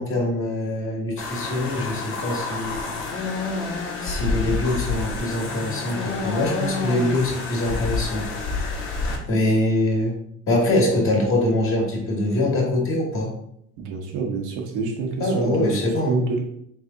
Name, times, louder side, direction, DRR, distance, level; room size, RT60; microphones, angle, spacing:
voice 1, 0.0-2.8 4.0-8.3 9.3-10.2 10.5-13.3 15.2-16.2, left 1 dB, 45° left, 0 dB, 1.5 m, -23 dB
sound 1, 1.2-9.2, left 3 dB, 80° left, 1.3 m, -28 dB
voice 2, 13.8-16.4, right 4 dB, 80° right, 2 dB, 1.1 m, -27 dB
3.5 x 3.3 x 3.9 m, 0.73 s
supercardioid pair, 100°, 30 cm